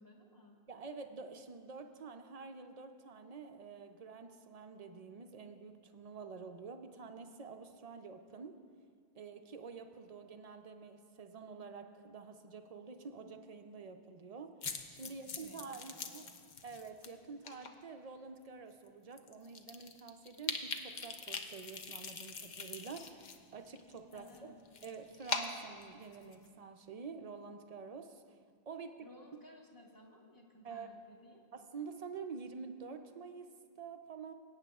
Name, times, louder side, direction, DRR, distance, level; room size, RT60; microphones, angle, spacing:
voice 1, 0.0-0.6 15.0-16.5 24.1-24.6 29.0-31.4, left 1 dB, 20° left, -1 dB, 1.1 m, -58 dB
voice 2, 0.7-8.6 9.2-14.6 14.9-16.3 16.6-24.5 24.8-28.4 28.7-29.1 30.6-30.9 31.5-34.3, right 5 dB, 50° right, 7 dB, 0.4 m, -48 dB
sound 1, 14.6-17.1 17.4-17.7 18.4-18.5 18.9-19.0 19.2-23.4 23.6-26.5, left 5 dB, 50° left, 0.7 m, -42 dB
20.5 x 9.0 x 2.3 m, 2.2 s
omnidirectional pair, 1.1 m